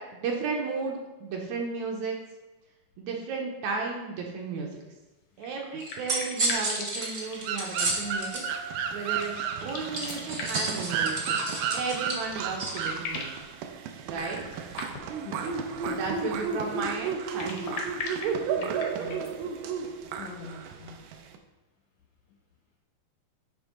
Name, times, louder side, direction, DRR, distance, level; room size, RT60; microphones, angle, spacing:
voice 1, 0.1-2.2 3.0-4.8 5.4-8.4 8.9-9.3 9.6-11.4 11.7-13.3 14.1-14.4 15.4-15.5 15.8-17.8, right 4 dB, 70° right, 0 dB, 2.0 m, -34 dB
sound 1, 5.4-7.9 9.5-10.8 12.1-12.2 12.5-13.4 14.3-15.3 17.2-19.3, left 3 dB, 60° left, 1.6 m, -39 dB
sound 2, 5.8-8.4 9.9-12.8, right 2 dB, 55° right, 0.9 m, -31 dB
sound 3, 7.0-21.4, right 6 dB, 90° right, 2.3 m, -33 dB
voice 2, 15.2-15.6 18.5-19.3 20.2-21.0, left 5 dB, 80° left, -1 dB, 1.4 m, -44 dB
9.8 x 3.4 x 5.2 m, 1.1 s
omnidirectional pair, 3.8 m